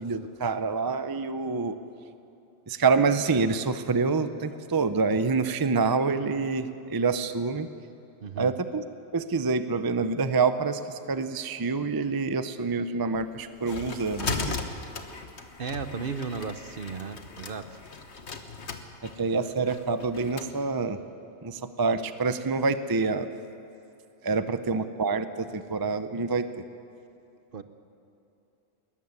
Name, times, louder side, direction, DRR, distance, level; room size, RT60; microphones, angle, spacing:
voice 1, 0.0-1.7 2.7-7.7 8.4-8.8 9.1-14.4 19.2-21.0 21.4-23.3 24.2-26.5, right 4 dB, 25° right, 10 dB, 0.6 m, -27 dB
voice 2, 8.2-8.5 14.2-14.6 15.6-17.8 27.5-27.6, right 5 dB, 55° right, 10 dB, 1.0 m, -35 dB
sound 1, 13.2-20.5, left 4 dB, 70° left, 1.6 m, -37 dB
20.0 x 14.5 x 9.7 m, 2.9 s
omnidirectional pair, 1.2 m